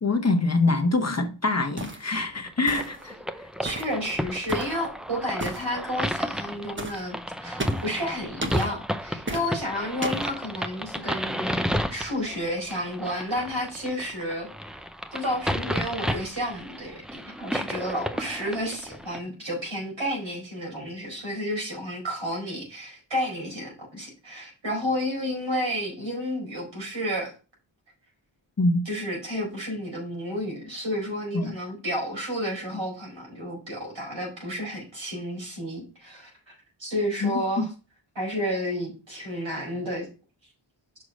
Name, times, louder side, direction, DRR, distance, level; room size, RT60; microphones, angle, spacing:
voice 1, 0.0-3.1 28.6-28.8 31.3-31.5 37.2-37.6, left 3 dB, 35° left, 1.0 m, -24 dB
sound 1, 1.8-2.1 2.7-3.1 3.7-4.0 4.5-4.8 5.4-5.7 6.8-7.0 7.6-7.9 8.4-8.7 9.3-9.5 10.0-10.3, right 2 dB, 25° right, 1.1 m, -33 dB
sound 2, 2.5-19.2, equal, ahead, 0.5 m, -32 dB
voice 2, 3.6-14.8 15.1-27.3 28.8-36.5 36.8-37.7 38.1-40.1, equal, 70° right, 4.7 m, -31 dB
6.4 x 4.8 x 5.2 m
wide cardioid pair, 80°, 48 cm